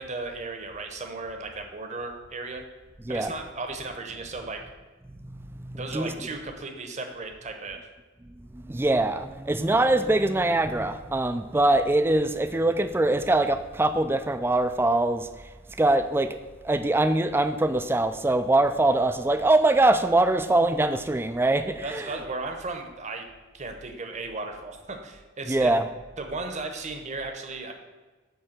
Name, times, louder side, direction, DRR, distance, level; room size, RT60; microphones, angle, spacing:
voice 1, 0.0-2.6 3.1-4.6 5.8-7.9 21.8-23.3 23.5-25.7 26.2-27.7, right 3 dB, 35° right, 5 dB, 0.9 m, -35 dB
voice 2, 5.3-6.1 8.5-15.3 15.8-16.4 16.6-22.2 25.5-25.8, right 2 dB, 10° right, 10 dB, 0.3 m, -23 dB
8.8 x 3.4 x 6.5 m, 1.3 s
head